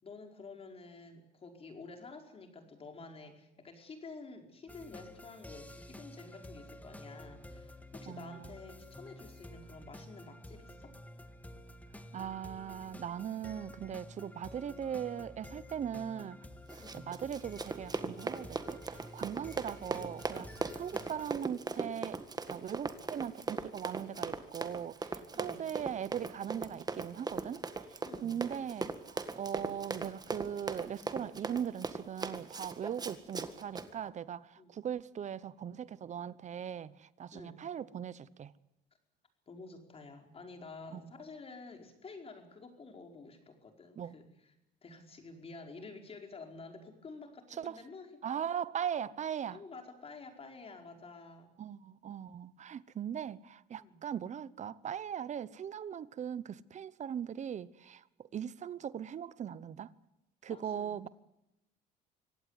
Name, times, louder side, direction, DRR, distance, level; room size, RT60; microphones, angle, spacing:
voice 1, 0.0-10.9 16.8-17.1 25.3-25.6 28.0-28.4 34.6-34.9 37.3-37.6 39.5-44.5 44.8-48.1 49.5-51.5 53.8-54.0 60.5-61.1, left 3 dB, 35° left, 4.8 m, -50 dB
sound 1, 4.7-21.3, left 1 dB, 10° left, 1.8 m, -50 dB
voice 2, 8.1-8.5 12.1-16.4 16.7-20.5 20.7-22.2 22.5-38.5 40.9-41.0 44.0-44.2 47.6-47.8 48.2-49.6 51.6-59.9 60.4-61.1, right 8 dB, 45° right, 0.9 m, -39 dB
Run, 16.7-33.9, right 4 dB, 25° right, 1.8 m, -39 dB
24.5 x 17.0 x 9.8 m
cardioid pair, 110°, 17 cm